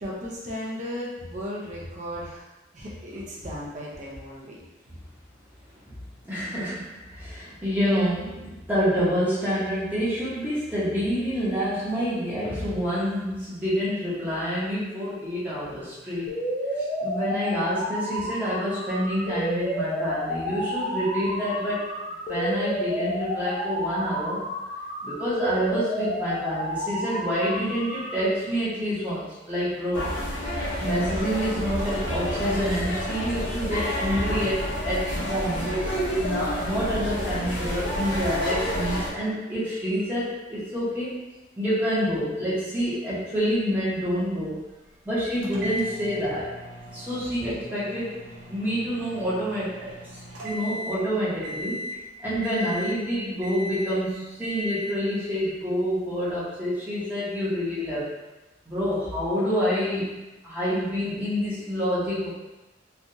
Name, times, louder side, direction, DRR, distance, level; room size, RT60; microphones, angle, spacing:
voice 1, 0.0-2.5 2.7-4.6, equal, 40° right, -5 dB, 0.7 m, -35 dB
voice 2, 6.2-16.4 16.8-21.9 22.3-24.4 25.0-30.0 30.8-35.7 36.2-41.2 41.6-44.6 45.0-46.5 46.9-48.2 48.5-51.9 52.2-58.1 58.7-60.2 60.4-62.3, equal, 10° right, -11 dB, 0.9 m, -27 dB
sound 1, 16.3-28.3, equal, 35° left, 0.4 m, -31 dB
sound 2, 29.9-39.1, equal, 70° left, 0.8 m, -29 dB
sound 3, 45.4-51.1 51.4-52.0 52.4-53.1 53.4-54.0 54.4-55.0, left 1 dB, 80° right, 0.6 m, -37 dB
3.3 x 2.3 x 2.7 m, 1.0 s
head